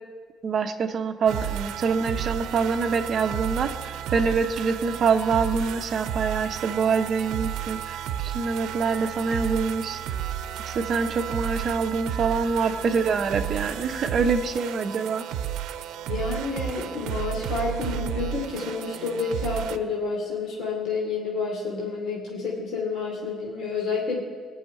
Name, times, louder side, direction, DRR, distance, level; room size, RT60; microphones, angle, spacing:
voice 1, 0.4-8.0 8.3-10.0 10.7-15.3, right 5 dB, 35° right, 5 dB, 0.9 m, -25 dB
sound 1, 1.3-19.8, right 10 dB, 85° right, 0.7 m, -32 dB
voice 2, 16.1-24.2, left 4 dB, 55° left, -3 dB, 2.8 m, -29 dB
19.5 x 6.5 x 9.5 m, 1.5 s
cardioid pair, 175°, 0 cm